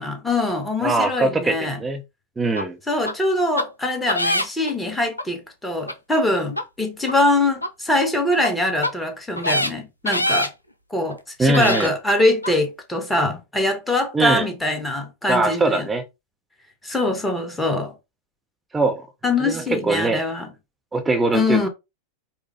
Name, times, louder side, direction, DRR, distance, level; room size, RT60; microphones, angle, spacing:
voice 1, 0.0-1.8 2.9-10.5 10.9-15.9 16.8-17.9 19.2-20.5 21.3-21.7, left 2 dB, 10° left, 1.2 m, -23 dB
voice 2, 0.8-2.0 2.4-2.8 11.4-11.9 14.1-14.5 15.3-16.0 18.7-19.0 19.4-20.2 20.9-21.7, right 2 dB, 10° right, 0.6 m, -21 dB
sound 1, 2.6-2.7 3.1-3.2 3.6-3.7 4.1-4.7 5.2-5.3 5.9-6.0 6.5-6.6 7.1-7.2 7.6-7.7 8.4-8.5 8.8-8.9 9.4-9.7 10.1-10.5 11.1-11.2 11.5-11.9 12.4-12.5, left 1 dB, 85° left, 0.5 m, -23 dB
5.0 x 2.1 x 3.3 m
figure-of-eight pair, 90°, 0 cm